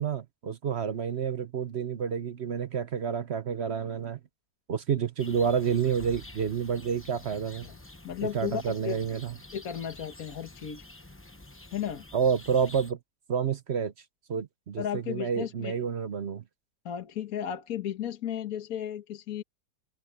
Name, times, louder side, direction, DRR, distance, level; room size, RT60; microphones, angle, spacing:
voice 1, 0.0-4.2 4.7-7.7 8.2-9.3 12.1-13.0 13.3-13.9 14.3-16.4, right 7 dB, 50° right, 0.9 m, -29 dB
sound 1, 5.2-12.9, left 2 dB, 10° left, 0.8 m, -48 dB
voice 2, 8.0-9.0 9.5-10.8 11.7-12.0 14.8-15.8 16.8-19.4, left 9 dB, 60° left, 1.6 m, -34 dB
omnidirectional pair, 1.7 m